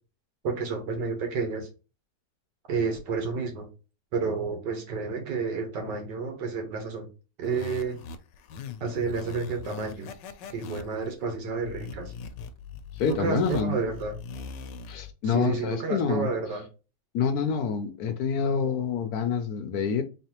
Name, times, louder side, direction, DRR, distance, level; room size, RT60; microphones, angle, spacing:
voice 1, 0.4-1.7 2.7-3.7 4.1-7.1 7.4-8.0 8.8-10.1 10.5-12.1 13.1-14.2 15.2-16.6, right 4 dB, 75° right, 1.8 m, -30 dB
sound 1, 7.4-15.1, left 5 dB, 85° left, 1.3 m, -41 dB
voice 2, 12.9-13.8 14.9-16.3 17.1-20.0, left 6 dB, 70° left, 1.0 m, -27 dB
4.0 x 3.2 x 2.9 m
omnidirectional pair, 1.9 m